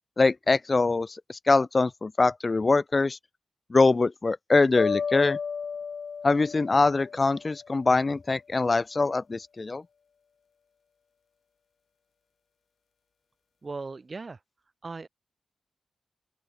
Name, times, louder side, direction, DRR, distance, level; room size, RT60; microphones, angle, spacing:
voice 1, 0.2-3.2 3.7-5.4 6.2-9.8, left 3 dB, 40° left, 1.1 m, -23 dB
sound 1, 4.8-7.9, left 6 dB, 70° left, 4.2 m, -33 dB
voice 2, 13.6-14.4 14.8-15.1, right 3 dB, 45° right, 2.6 m, -37 dB
open air
cardioid pair, 75°, 0 cm